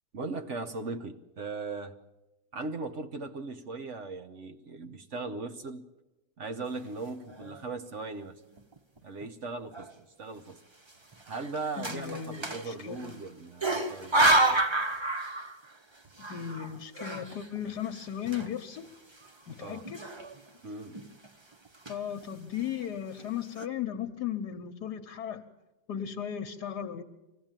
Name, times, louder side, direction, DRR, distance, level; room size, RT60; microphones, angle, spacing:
voice 1, 0.1-2.0 2.5-5.9 6.4-8.4 9.0-9.9 10.2-10.6 11.2-14.7 19.6-19.9 20.6-21.0, right 3 dB, 50° right, 8 dB, 1.2 m, -38 dB
sound 1, 7.1-7.7 8.2-8.3 8.6-9.3 9.7-9.9 10.9-13.2 13.6-15.8 16.0-18.9 19.2-19.3 19.8-20.6 20.9-21.3 21.7-22.2 22.8-22.9 23.2-23.7, right 2 dB, 25° right, 0.6 m, -30 dB
voice 2, 11.8-13.3 16.2-18.9 19.5-20.0 21.9-25.4 25.9-27.0, left 9 dB, 70° left, 7 dB, 1.5 m, -36 dB
24.5 x 16.0 x 8.9 m, 1.0 s
omnidirectional pair, 1.8 m